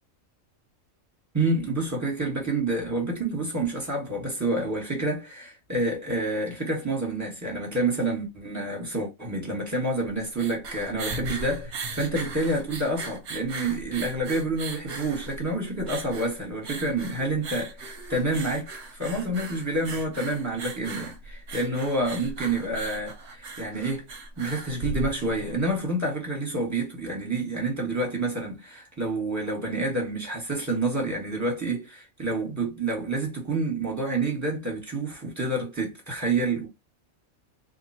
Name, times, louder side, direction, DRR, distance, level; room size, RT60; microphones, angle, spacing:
voice 1, 1.3-24.1 24.4-36.7, right 2 dB, 10° right, 1.7 m, -28 dB
sound 1, 10.1-25.5, right 3 dB, 60° right, 1.1 m, -38 dB
2.8 x 2.8 x 4.3 m
omnidirectional pair, 1.4 m